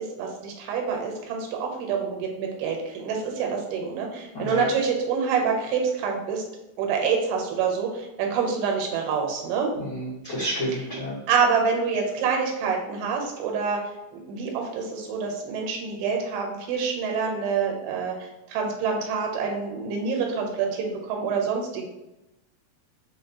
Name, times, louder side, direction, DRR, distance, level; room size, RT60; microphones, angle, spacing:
voice 1, 0.0-6.4 6.8-9.7 11.3-13.8 14.1-21.9, right 5 dB, 85° right, 1 dB, 2.7 m, -27 dB
voice 2, 4.3-4.7 9.8-11.2, right 1 dB, 65° left, -12 dB, 1.0 m, -30 dB
6.0 x 2.2 x 2.7 m, 0.96 s
omnidirectional pair, 4.5 m